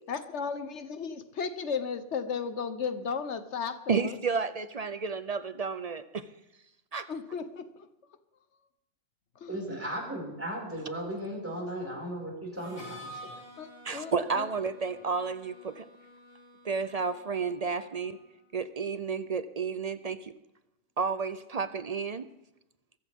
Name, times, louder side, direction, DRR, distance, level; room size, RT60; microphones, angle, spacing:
voice 1, 0.1-4.2 7.1-7.7 9.4-9.6 13.6-14.5, left 6 dB, 60° left, 11 dB, 1.3 m, -35 dB
voice 2, 3.9-6.3 6.9-7.1 13.8-15.8 16.6-18.2 18.5-20.3 21.0-22.3, right 5 dB, 50° right, 12 dB, 0.4 m, -31 dB
voice 3, 9.5-13.4, right 1 dB, 10° right, -3 dB, 5.7 m, -36 dB
Harmonica, 12.6-18.3, equal, 20° left, 5.9 m, -50 dB
23.0 x 14.0 x 3.6 m, 0.93 s
omnidirectional pair, 1.4 m